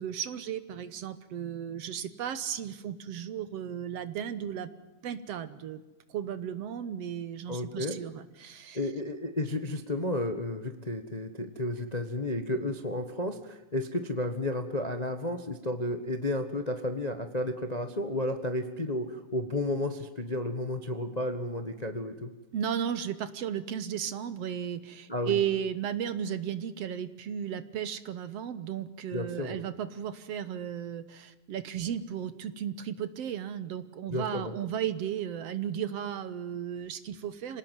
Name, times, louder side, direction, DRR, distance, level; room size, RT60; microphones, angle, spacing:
voice 1, 0.0-4.7 5.0-5.8 6.1-8.8 22.5-37.6, right 9 dB, 65° right, 13 dB, 1.9 m, -34 dB
voice 2, 7.5-8.0 8.7-22.3 25.1-25.4 29.1-29.6 34.1-34.5, left 1 dB, 70° left, 8 dB, 0.4 m, -32 dB
26.5 x 18.5 x 9.4 m, 1.1 s
omnidirectional pair, 3.6 m